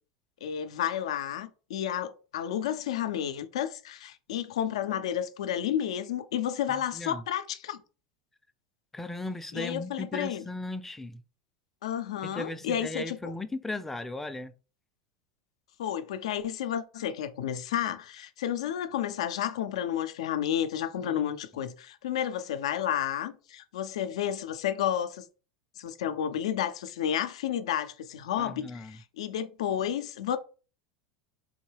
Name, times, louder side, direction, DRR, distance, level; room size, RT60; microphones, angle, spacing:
voice 1, 0.4-7.8 9.5-10.4 11.8-13.3 15.8-25.3 25.8-30.4, left 10 dB, 85° left, 0.3 m, -31 dB
voice 2, 6.7-7.2 8.9-11.2 12.2-14.5 21.0-21.4 28.4-29.0, left 2 dB, 10° left, 0.4 m, -37 dB
3.6 x 2.2 x 3.2 m
hypercardioid pair, 100°, 3 cm